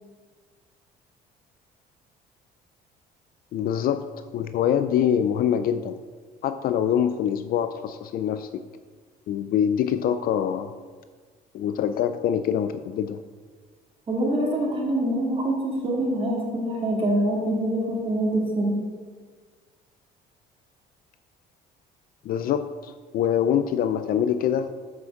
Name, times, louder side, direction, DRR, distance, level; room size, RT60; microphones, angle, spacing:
voice 1, 3.5-4.0 4.3-6.0 6.4-8.6 9.3-10.7 11.5-13.2 22.2-24.8, left 9 dB, 60° left, 10 dB, 0.4 m, -24 dB
voice 2, 14.1-18.8, right 1 dB, 30° right, -2 dB, 2.2 m, -25 dB
7.6 x 5.9 x 5.9 m, 1.5 s
cardioid pair, 110°, 17 cm